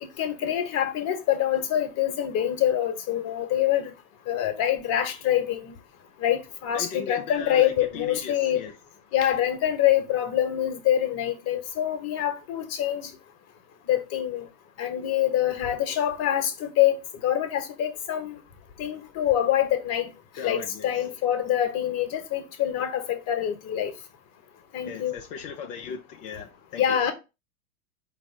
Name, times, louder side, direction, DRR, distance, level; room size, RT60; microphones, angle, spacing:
voice 1, 0.0-3.9 4.3-5.7 6.2-8.6 9.1-13.1 13.9-14.5 14.8-17.0 17.2-18.4 18.8-20.1 20.4-23.9 24.7-25.1 26.8-27.1, left 11 dB, 35° left, 1.0 m, -25 dB
voice 2, 6.7-8.8 20.3-21.1 24.8-27.0, left 7 dB, 20° left, 0.3 m, -38 dB
4.8 x 2.5 x 4.5 m
hypercardioid pair, 105°, 43 cm